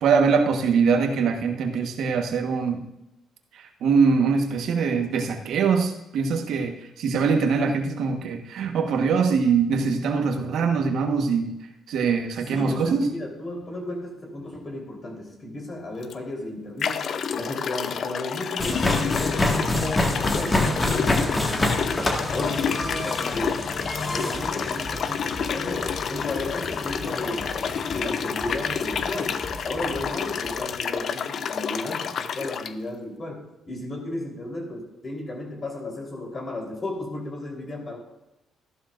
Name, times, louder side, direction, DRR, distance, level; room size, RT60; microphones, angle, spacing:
voice 1, 0.0-2.8 3.8-6.7 7.0-11.5 11.9-13.0, right 5 dB, 75° right, 4 dB, 1.3 m, -22 dB
voice 2, 12.5-17.0 17.3-22.0 22.3-23.7 24.1-38.0, left 1 dB, 40° left, 0 dB, 3.8 m, -34 dB
sound 1, 16.0-16.1 16.8-32.7, left 7 dB, 60° left, 0.6 m, -29 dB
sound 2, 18.6-30.6, left 2 dB, 25° left, 1.8 m, -28 dB
14.0 x 12.0 x 2.6 m, 0.91 s
cardioid pair, 90°, 0 cm